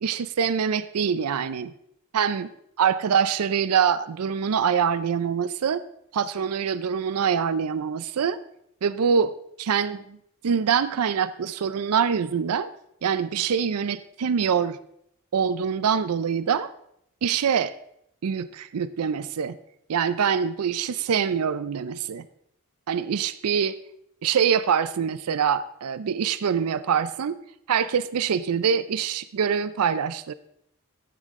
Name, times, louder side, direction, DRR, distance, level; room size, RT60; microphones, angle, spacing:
voice 1, 0.0-1.7 2.1-2.5 2.8-5.8 6.1-8.4 8.8-9.3 9.6-10.2 10.4-12.7 13.0-14.8 15.3-16.7 17.2-17.7 18.2-19.6 19.9-22.2 22.9-23.7 24.2-27.4 27.7-30.3, right 7 dB, 80° right, 15 dB, 0.4 m, -24 dB
13.5 x 8.4 x 3.6 m, 0.74 s
head